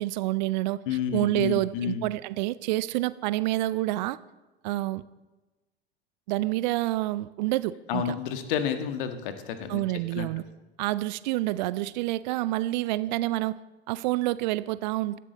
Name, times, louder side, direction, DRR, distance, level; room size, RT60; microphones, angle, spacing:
voice 1, 0.0-0.8 1.1-4.2 4.6-5.0 6.3-8.1 9.7-10.4 10.8-13.6 13.9-15.2, right 17 dB, 45° right, 0.5 m, -28 dB
voice 2, 0.9-2.1 7.9-9.8 10.1-10.3, left 8 dB, 55° left, 1.6 m, -30 dB
17.0 x 13.0 x 4.1 m
figure-of-eight pair, 80°, 31 cm